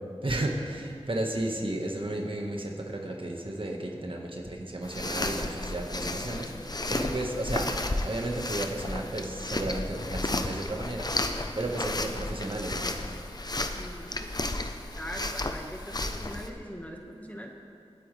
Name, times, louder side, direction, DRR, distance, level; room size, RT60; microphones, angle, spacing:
voice 1, 0.2-7.8 8.0-11.1 11.6-12.9, right 1 dB, 50° right, 1 dB, 1.6 m, -33 dB
sound 1, 4.8-16.5, left 2 dB, 40° left, 0.8 m, -33 dB
voice 2, 13.7-14.3 15.0-17.6, equal, 15° left, 1 dB, 1.6 m, -41 dB
26.0 x 9.1 x 3.4 m, 2.3 s
wide cardioid pair, 40°, 11 cm